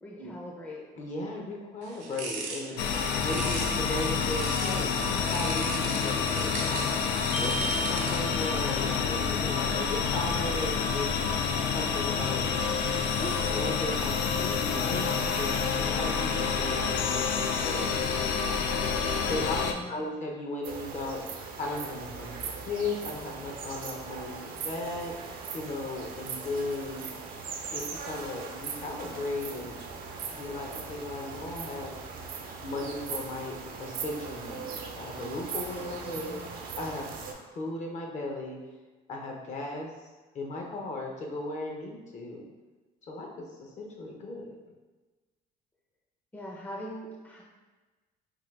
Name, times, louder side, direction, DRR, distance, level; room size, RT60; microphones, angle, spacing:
voice 1, 0.0-0.8 19.5-20.1 36.2-36.5 46.3-47.4, equal, 10° left, -2 dB, 0.6 m, -42 dB
voice 2, 1.0-2.8 3.2-11.1 11.7-12.5 13.2-18.1 19.3-19.6 19.9-27.0 27.7-29.7 30.3-31.9 32.6-38.6 39.1-39.9 40.3-42.5 43.1-44.6, left 2 dB, 45° left, 0 dB, 0.8 m, -36 dB
sound 1, 1.8-4.8 5.3-8.4, right 4 dB, 80° right, 0.9 m, -39 dB
sound 2, 2.8-19.7, left 5 dB, 85° left, 0.4 m, -28 dB
sound 3, 20.6-37.3, right 5 dB, 55° right, 0.6 m, -39 dB
3.8 x 2.7 x 3.3 m, 1.2 s
cardioid pair, 110°, 17 cm